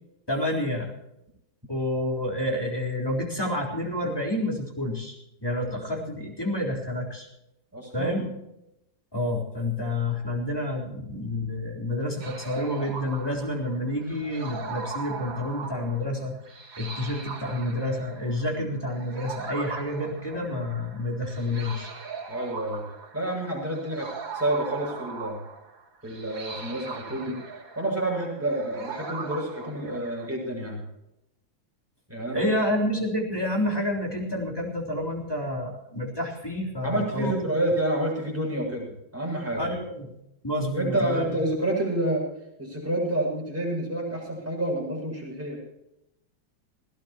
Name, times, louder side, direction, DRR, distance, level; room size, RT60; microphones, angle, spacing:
voice 1, 0.3-0.9 1.7-7.3 7.9-8.3 9.1-16.4 16.8-21.9 32.3-37.3 39.6-40.1 40.4-41.3, left 1 dB, 10° left, -2 dB, 3.7 m, -29 dB
voice 2, 7.7-8.2 22.3-22.8 23.1-25.4 26.0-27.4 27.8-30.8 32.1-32.4 36.8-39.6 40.7-42.2 42.6-45.6, right 1 dB, 5° right, -2 dB, 7.2 m, -28 dB
sound 1, 12.2-30.3, right 5 dB, 85° right, 2.9 m, -40 dB
21.0 x 16.5 x 3.0 m, 0.85 s
omnidirectional pair, 2.0 m